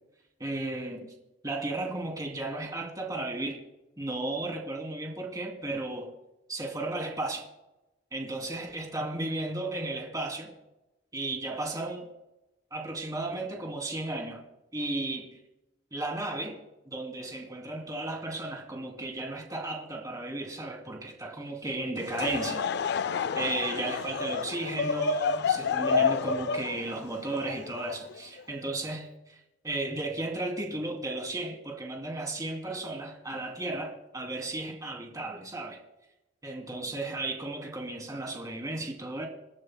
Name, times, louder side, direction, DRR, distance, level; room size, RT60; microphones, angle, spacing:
voice 1, 0.4-1.1 1.4-3.6 4.0-6.1 6.5-7.5 8.1-10.5 11.1-12.1 12.7-14.4 14.7-15.3 15.9-16.6 16.9-22.7 23.3-29.4 29.6-35.8 36.4-39.3, right 2 dB, 20° right, 2.9 m, -34 dB
Laughter / Crowd, 22.0-28.4, left 5 dB, 60° left, 0.4 m, -29 dB
28.0 x 12.0 x 2.2 m
head